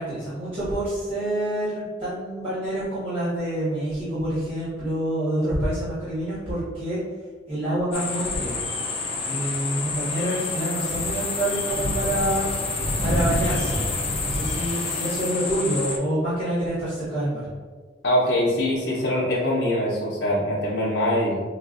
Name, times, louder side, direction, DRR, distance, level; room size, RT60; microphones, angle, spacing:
voice 1, 0.0-7.0 7.5-8.6 9.2-12.5 13.0-13.9 14.2-17.4, right 1 dB, 25° right, -15 dB, 1.5 m, -27 dB
sound 1, 7.9-16.0, left 3 dB, 30° left, 0.4 m, -27 dB
voice 2, 18.0-21.4, left 1 dB, 65° left, -6 dB, 0.7 m, -23 dB
5.4 x 2.5 x 2.4 m, 1.5 s
head